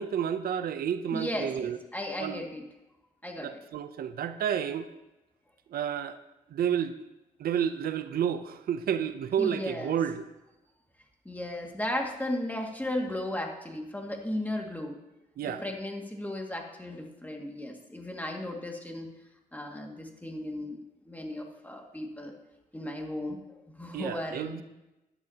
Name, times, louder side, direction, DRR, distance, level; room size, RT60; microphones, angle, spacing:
voice 1, 0.0-1.8 2.2-2.4 3.4-4.9 5.7-6.2 6.5-6.9 7.4-10.3 15.4-15.6 23.9-24.6, right 8 dB, 85° right, 11 dB, 0.5 m, -30 dB
voice 2, 1.1-2.6 3.2-3.5 9.4-10.0 11.3-15.0 15.4-19.1 19.5-22.3 22.7-24.6, left 1 dB, 10° left, 1 dB, 2.0 m, -35 dB
14.5 x 11.0 x 2.8 m, 0.98 s
cardioid pair, 65°, 15 cm